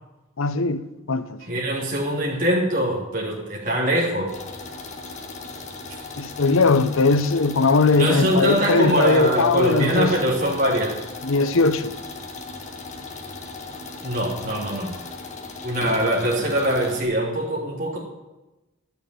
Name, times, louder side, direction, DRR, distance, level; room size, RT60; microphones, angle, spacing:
voice 1, 0.4-0.8 1.1-1.4 6.2-10.1 11.2-11.9, left 3 dB, 75° left, 0.8 m, -19 dB
voice 2, 1.4-4.3 8.0-11.0 14.0-15.0 15.6-18.0, right 1 dB, 45° right, 3.1 m, -23 dB
sound 1, 4.3-17.0, left 3 dB, 35° left, 1.9 m, -37 dB
12.0 x 7.2 x 9.4 m
head